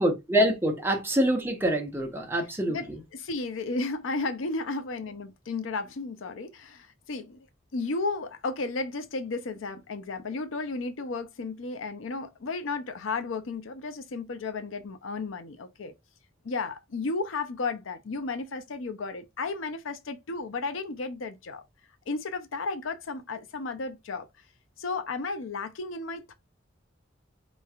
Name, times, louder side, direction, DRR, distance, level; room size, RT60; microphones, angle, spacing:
voice 1, 0.0-3.0, equal, 10° right, 0.9 m, -25 dB
voice 2, 2.7-7.5 7.7-15.9 16.4-21.6 22.1-24.3 24.8-26.3, left 3 dB, 80° left, 0.6 m, -33 dB
4.4 x 3.1 x 2.4 m
head